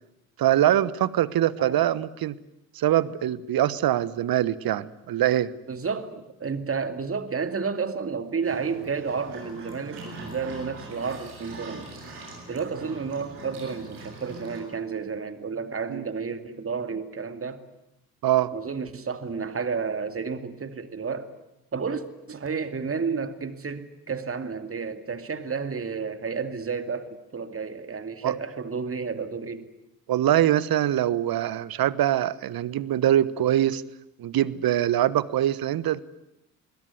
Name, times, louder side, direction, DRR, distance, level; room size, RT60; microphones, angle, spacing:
voice 1, 0.4-2.4 2.7-5.5 15.9-16.1 18.2-18.5 28.2-28.3 30.1-33.8 34.2-36.0, right 12 dB, 50° right, 19 dB, 1.3 m, -23 dB
voice 2, 5.7-12.0 12.5-17.6 18.5-21.3 21.7-29.7, right 5 dB, 30° right, 10 dB, 2.5 m, -31 dB
sound 1, 8.4-14.6, right 2 dB, 85° right, 7.7 m, -42 dB
27.5 x 21.5 x 9.7 m, 0.85 s
hypercardioid pair, 45°, 44 cm